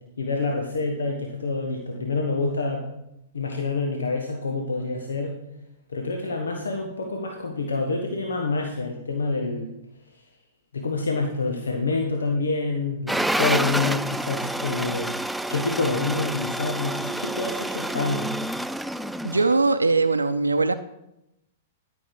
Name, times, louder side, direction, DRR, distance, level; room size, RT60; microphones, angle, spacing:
voice 1, 0.2-2.9 3.3-5.4 5.9-9.7 10.7-15.1 15.5-18.3, left 3 dB, 80° left, 2 dB, 1.2 m, -27 dB
sound 1, 13.1-19.5, right 1 dB, 5° right, 0.3 m, -28 dB
voice 2, 19.2-20.7, right 3 dB, 90° right, 8 dB, 0.5 m, -21 dB
13.0 x 6.1 x 4.8 m, 0.86 s
figure-of-eight pair, 105°, 0 cm